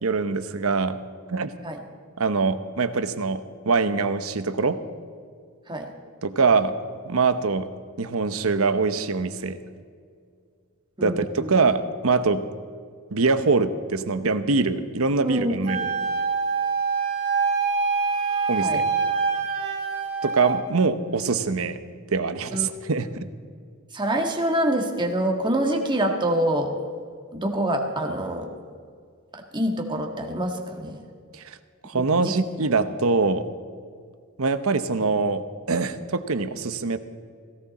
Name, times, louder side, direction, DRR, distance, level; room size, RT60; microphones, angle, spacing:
voice 1, 0.0-1.0 1.3-1.5 2.2-4.8 6.2-7.7 8.0-9.6 11.0-12.5 13.1-15.9 18.5-18.8 20.2-21.8 22.1-23.3 31.3-31.6 31.8-33.5 34.4-37.0, right 4 dB, 70° right, 11 dB, 0.9 m, -23 dB
voice 2, 11.0-11.6 15.2-15.6 18.6-18.8 22.5-22.7 23.9-26.8 27.3-28.5 29.3-31.0 31.9-32.3, right 1 dB, 20° right, 2 dB, 1.7 m, -26 dB
Wind instrument woodwind instrument, 15.6-20.6, right 5 dB, 50° right, 3.1 m, -25 dB
17.0 x 17.0 x 4.2 m, 2.1 s
head